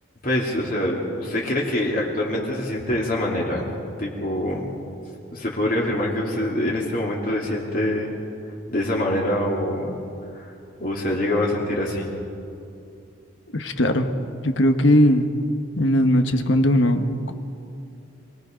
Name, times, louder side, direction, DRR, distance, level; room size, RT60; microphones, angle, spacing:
voice 1, 0.2-3.7 4.0-4.6 5.3-8.1 8.7-10.0 10.3-10.5 10.8-12.1, left 1 dB, 45° left, -3 dB, 2.8 m, -25 dB
voice 2, 13.5-14.1 14.4-15.3 15.8-17.3, left 1 dB, 75° left, 7 dB, 1.4 m, -19 dB
27.0 x 19.5 x 5.3 m, 2.6 s
head